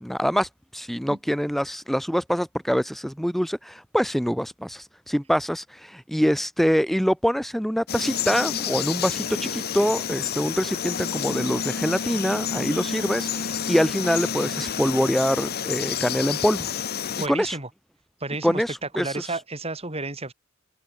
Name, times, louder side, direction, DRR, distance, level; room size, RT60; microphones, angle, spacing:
voice 1, 0.0-16.7 17.3-17.6 18.4-19.4, equal, ahead, 1.3 m, -25 dB
Frog, 7.9-17.3, left 7 dB, 45° left, 1.3 m, -29 dB
voice 2, 17.2-17.7 18.2-18.6 19.0-20.3, right 2 dB, 30° right, 5.7 m, -31 dB
open air
head